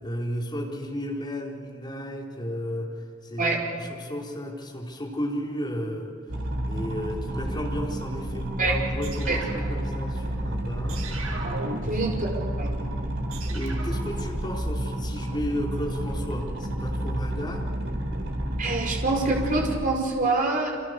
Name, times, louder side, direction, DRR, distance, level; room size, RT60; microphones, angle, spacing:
voice 1, 0.0-6.1 6.7-11.0 11.8-12.5 13.5-17.7, equal, 20° left, -2 dB, 4.3 m, -33 dB
sound 1, 6.3-19.8, right 1 dB, 60° right, 3.7 m, -30 dB
sound 2, 9.0-10.4 10.9-12.4 13.3-14.0, right 2 dB, 85° right, 7.6 m, -37 dB
voice 2, 11.9-12.7 18.6-20.7, right 3 dB, 40° right, 0 dB, 5.0 m, -25 dB
28.0 x 27.0 x 6.7 m, 2.2 s
head